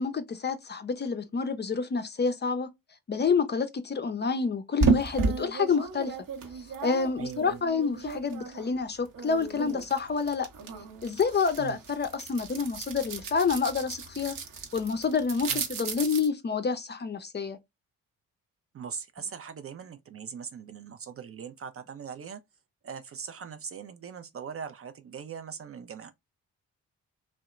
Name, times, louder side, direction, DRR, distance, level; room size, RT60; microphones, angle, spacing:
voice 1, 0.0-2.7 3.1-6.2 6.8-10.5 11.0-14.4 14.7-17.6, left 5 dB, 25° left, 0.5 m, -28 dB
sound 1, 4.8-8.7 9.1-16.3, right 4 dB, 55° right, 0.8 m, -33 dB
voice 2, 7.2-7.6 11.6-11.8 15.5-15.6 18.7-22.4 22.8-26.1, right 7 dB, 35° right, 0.4 m, -41 dB
2.7 x 2.1 x 2.3 m
hypercardioid pair, 45°, 40 cm